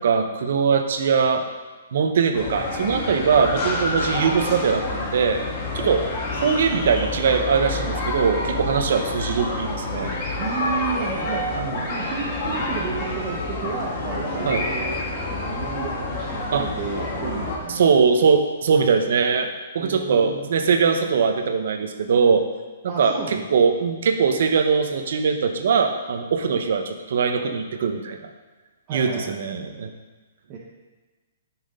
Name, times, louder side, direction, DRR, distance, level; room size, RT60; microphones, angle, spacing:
voice 1, 0.0-1.4 1.9-5.4 5.7-6.0 6.3-10.1 11.6-11.9 14.4-14.6 16.5-16.7 17.7-19.5 19.7-22.4 22.8-28.3 28.9-29.9, right 5 dB, 65° right, 5 dB, 1.2 m, -21 dB
sound 1, 2.3-17.6, left 2 dB, 30° left, 2.0 m, -28 dB
voice 2, 10.4-11.4 11.9-17.9 19.8-20.4 22.9-23.4 28.9-29.6 30.5-30.6, right 6 dB, 30° right, -4 dB, 1.3 m, -32 dB
14.0 x 6.3 x 4.0 m, 1.3 s
hypercardioid pair, 160°, 0 cm